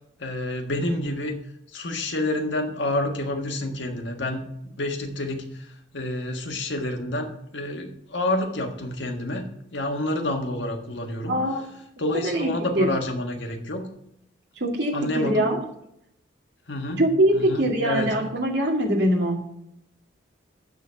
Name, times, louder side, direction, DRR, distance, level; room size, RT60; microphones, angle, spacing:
voice 1, 0.2-1.3 1.7-11.4 12.0-13.9 14.9-15.5 16.7-17.0 17.3-18.1, left 1 dB, 75° left, 3 dB, 1.5 m, -29 dB
voice 2, 11.3-11.7 12.2-12.9 14.6-15.6 17.0-19.4, right 1 dB, 65° right, -1 dB, 2.4 m, -23 dB
12.0 x 4.1 x 6.8 m, 0.77 s
head